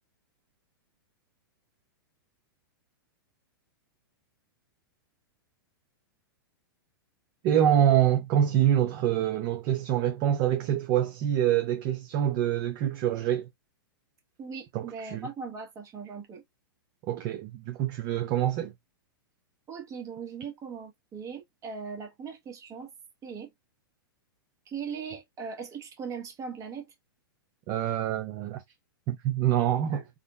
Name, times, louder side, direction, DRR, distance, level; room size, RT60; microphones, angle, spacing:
voice 1, 7.4-13.5 14.7-15.3 17.1-18.7 27.7-28.6 29.1-30.0, right 11 dB, 45° right, 0.6 m, -25 dB
voice 2, 14.4-16.4 19.7-22.9 23.2-23.5 24.7-26.9 29.9-30.0, right 6 dB, 25° right, 0.9 m, -39 dB
3.7 x 2.0 x 2.2 m
hypercardioid pair, 110°, 12 cm